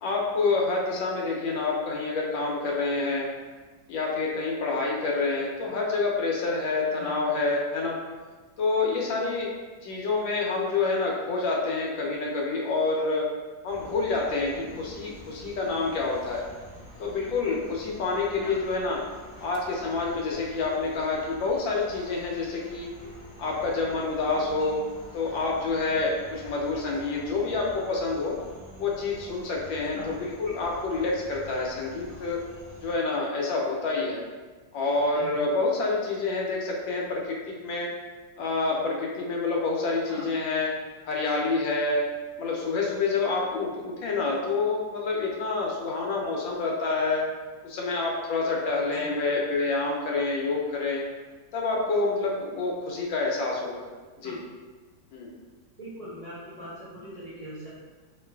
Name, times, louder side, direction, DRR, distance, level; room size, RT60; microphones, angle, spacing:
voice 1, 0.0-3.3 3.9-8.0 8.6-9.5 9.8-13.3 13.6-16.4 17.0-19.0 19.4-22.9 23.4-24.8 25.1-28.4 28.8-32.4 32.8-34.2 34.7-37.4 37.6-37.9 38.4-40.7 41.1-42.1 42.4-47.2 47.6-51.0 51.5-53.8 54.2-54.4 55.1-55.3, left 3 dB, 80° left, -2 dB, 1.4 m, -27 dB
sound 1, 13.7-32.9, equal, 40° left, 0.6 m, -47 dB
voice 2, 55.8-57.7, equal, 35° right, -12 dB, 0.6 m, -42 dB
3.1 x 2.5 x 3.3 m, 1.3 s
omnidirectional pair, 2.1 m